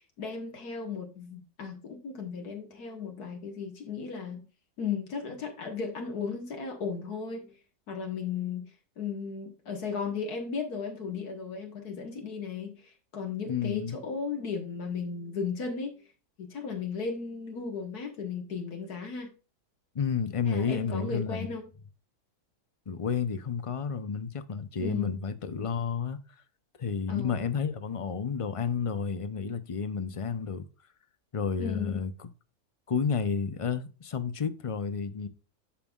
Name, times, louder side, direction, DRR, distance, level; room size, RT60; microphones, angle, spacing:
voice 1, 0.2-4.5 4.8-7.5 7.9-8.7 9.0-15.9 16.4-19.3 20.4-21.7 24.8-25.2 27.1-27.5 31.6-32.0, left 5 dB, 85° left, 2.0 m, -35 dB
voice 2, 13.5-14.0 19.9-21.5 22.9-26.2 26.8-30.7 31.3-32.3 32.9-35.3, left 6 dB, 50° left, 0.4 m, -31 dB
11.5 x 5.5 x 2.4 m
omnidirectional pair, 1.6 m